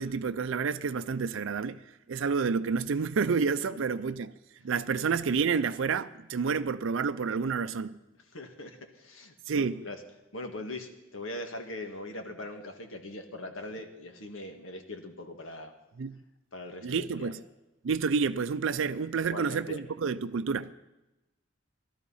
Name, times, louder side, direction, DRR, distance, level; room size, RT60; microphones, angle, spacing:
voice 1, 0.0-1.8 2.1-4.3 4.6-8.0 9.5-9.8 16.0-16.2 16.8-17.4 17.8-20.7, right 5 dB, 75° right, 0.4 m, -29 dB
voice 2, 8.3-10.0 10.3-15.7 16.5-17.3 19.2-19.8, left 1 dB, 85° left, 1.8 m, -41 dB
16.5 x 12.5 x 5.6 m
head